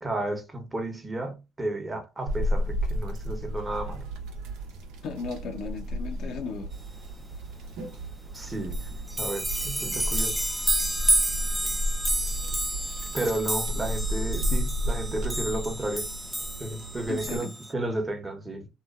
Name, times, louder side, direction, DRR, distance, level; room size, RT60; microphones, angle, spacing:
voice 1, 0.0-4.1 8.3-8.8 9.2-10.4 13.1-16.1 16.6-18.7, right 1 dB, 20° right, 0.9 m, -32 dB
sound 1, 2.3-17.4, equal, 80° right, 0.8 m, -32 dB
voice 2, 5.0-6.7 17.1-17.5, left 5 dB, 65° left, 0.6 m, -35 dB
sound 2, 8.4-8.5 8.7-17.7, right 1 dB, 5° right, 0.5 m, -30 dB
2.9 x 2.2 x 2.4 m
supercardioid pair, 70°, 0 cm